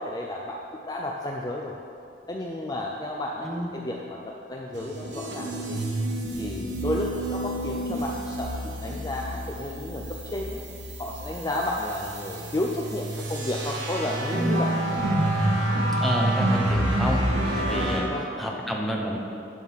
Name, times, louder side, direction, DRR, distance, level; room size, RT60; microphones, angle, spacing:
voice 1, 0.0-1.7 2.3-5.8 6.4-10.6 11.0-14.8 17.7-18.7, left 1 dB, 20° left, -1 dB, 0.5 m, -32 dB
voice 2, 3.4-3.7 16.0-17.2 17.6-18.1 18.4-19.2, equal, ahead, -2 dB, 0.9 m, -29 dB
sound 1, 4.7-18.0, right 1 dB, 80° right, 1.4 m, -28 dB
11.0 x 3.7 x 6.4 m, 2.5 s
head